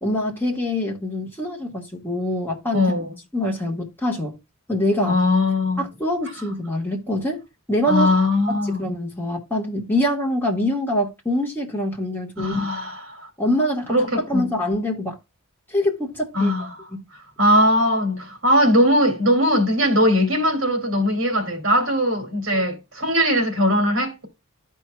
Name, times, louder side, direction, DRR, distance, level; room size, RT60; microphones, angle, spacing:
voice 1, 0.0-2.9 3.3-4.4 4.7-5.2 5.8-7.4 7.7-8.1 8.5-12.5 13.4-15.2 15.7-17.0 22.5-22.6, left 1 dB, 10° left, 1.3 m, -25 dB
voice 2, 2.7-3.1 5.1-5.8 7.9-8.8 12.4-13.3 13.9-14.5 16.3-16.7 17.4-24.3, left 1 dB, 60° right, 2.3 m, -20 dB
13.5 x 4.6 x 2.2 m
head